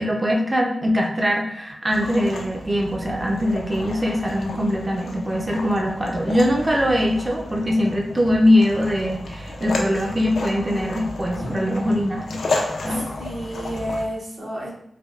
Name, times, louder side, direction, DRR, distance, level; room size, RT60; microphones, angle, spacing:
voice 1, 0.0-12.4 12.8-13.0, equal, 25° right, 0 dB, 0.5 m, -22 dB
sound 1, 1.9-14.1, left 2 dB, 85° left, 0.4 m, -32 dB
voice 2, 11.3-12.0 12.9-14.7, equal, 65° right, -5 dB, 1.1 m, -31 dB
3.3 x 2.3 x 2.4 m, 0.72 s
cardioid pair, 65°, 0 cm